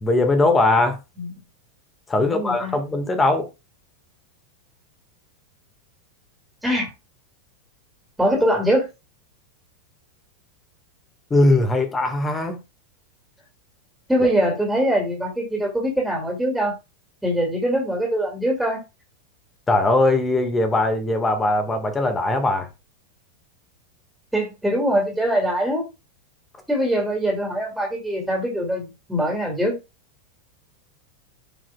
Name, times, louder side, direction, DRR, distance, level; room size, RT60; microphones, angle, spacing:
voice 1, 0.0-1.0 2.1-3.5 11.3-12.6 19.7-22.7, left 2 dB, 15° left, 1.7 m, -20 dB
voice 2, 2.2-2.8 6.6-6.9 8.2-8.9 14.1-16.7 17.2-18.8 24.3-25.9 26.7-29.8, equal, 5° right, 2.4 m, -23 dB
14.5 x 4.8 x 2.3 m
figure-of-eight pair, 90°, 0 cm